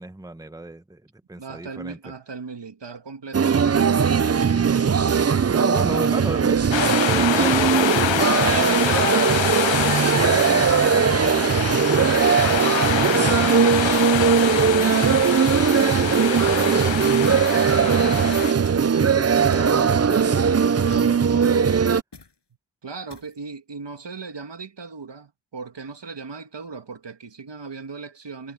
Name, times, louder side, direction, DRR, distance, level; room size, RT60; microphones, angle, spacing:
voice 1, 0.0-2.0 4.4-14.3 14.7-18.5 19.0-21.8, right 2 dB, 10° right, 1.1 m, -36 dB
voice 2, 1.4-4.2 19.2-19.9 22.8-28.5, right 4 dB, 70° right, 1.9 m, -38 dB
sound 1, 3.3-22.0, right 6 dB, 35° right, 0.6 m, -19 dB
sound 2, 6.7-18.5, left 11 dB, 85° left, 0.6 m, -26 dB
sound 3, 18.6-19.0 19.5-19.8 20.9-21.3 22.1-22.4 23.1-23.4, left 4 dB, 65° left, 6.4 m, -52 dB
cardioid pair, 50°, 44 cm